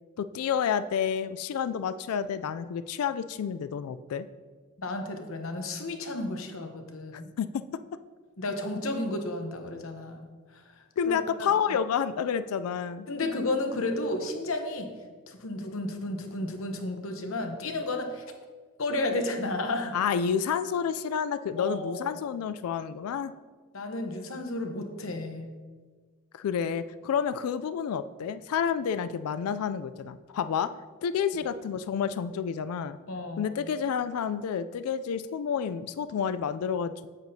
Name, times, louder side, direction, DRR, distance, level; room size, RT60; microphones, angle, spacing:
voice 1, 0.2-4.3 7.1-7.6 11.0-13.1 19.9-23.3 26.3-30.7 31.0-33.0 33.4-37.1, left 7 dB, 90° left, 13 dB, 0.3 m, -29 dB
voice 2, 4.8-7.3 8.4-10.3 10.5-10.6 11.1-11.2 13.1-14.9 15.3-18.2 18.8-20.0 21.6-22.2 23.7-25.5 33.1-33.5, left 2 dB, 70° left, 5 dB, 0.9 m, -32 dB
8.9 x 7.8 x 2.7 m, 1.5 s
head